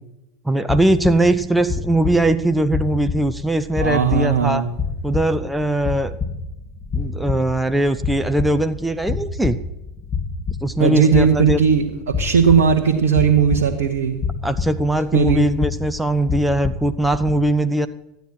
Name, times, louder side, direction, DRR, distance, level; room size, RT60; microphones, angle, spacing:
voice 1, 0.5-4.6 5.0-6.2 6.9-9.6 10.6-11.6 14.4-17.9, right 1 dB, 5° right, 10 dB, 0.6 m, -20 dB
sound 1, 0.7-17.3, left 5 dB, 25° left, 2.5 m, -28 dB
voice 2, 3.8-4.7 10.8-14.2 15.1-15.5, right 6 dB, 70° right, 2 dB, 0.9 m, -17 dB
13.0 x 9.3 x 6.2 m, 0.92 s
figure-of-eight pair, 75°, 0 cm